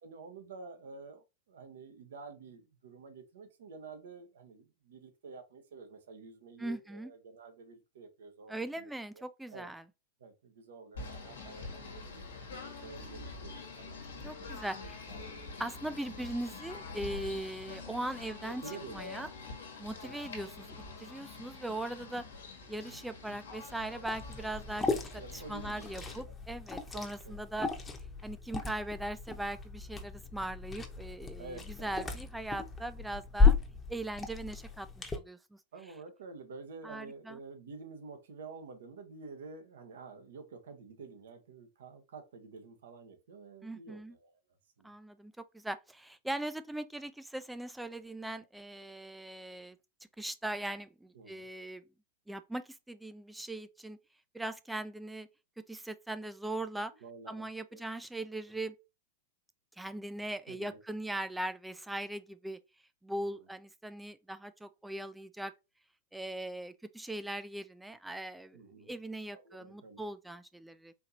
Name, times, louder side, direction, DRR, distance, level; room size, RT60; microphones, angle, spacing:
voice 1, 0.0-9.2 9.5-9.7 10.2-12.2 12.8-14.5 14.8-15.4 18.4-19.3 20.0-20.2 25.2-26.3 26.9-27.3 31.4-32.2 35.7-44.4 44.8-44.9 51.1-51.5 57.0-57.8 60.5-60.8 63.2-63.5 68.5-68.9 69.3-70.0, right 4 dB, 75° right, 0.9 m, -50 dB
voice 2, 6.6-7.1 8.5-9.8 14.2-15.0 15.6-18.6 18.9-19.3 19.8-22.2 22.7-24.9 25.1-27.7 28.2-33.5 33.9-35.6 36.8-37.4 43.6-44.1 44.8-49.8 50.2-51.8 52.3-54.0 54.3-55.3 55.7-56.9 57.3-58.8 59.8-62.6 63.0-65.5 66.1-70.9, right 1 dB, 5° right, 0.3 m, -40 dB
Singing / Bird, 10.9-26.2, left 3 dB, 80° left, 1.2 m, -46 dB
Liquid, 24.1-35.2, left 4 dB, 15° left, 0.8 m, -34 dB
4.4 x 2.8 x 2.7 m
hypercardioid pair, 100°, 0 cm